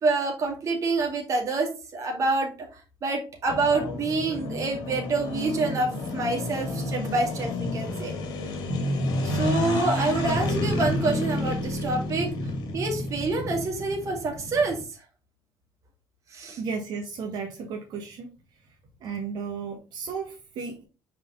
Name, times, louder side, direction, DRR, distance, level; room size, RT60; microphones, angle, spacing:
voice 1, 0.0-8.1 9.2-12.3 12.7-14.8 16.3-16.6, right 3 dB, 40° right, 1 dB, 2.2 m, -27 dB
sound 1, 3.5-14.8, left 1 dB, 65° left, 2.0 m, -30 dB
voice 2, 16.6-18.3 19.0-20.8, right 5 dB, 65° right, 1 dB, 1.5 m, -34 dB
5.8 x 4.8 x 3.8 m, 0.32 s
cardioid pair, 135°, 8 cm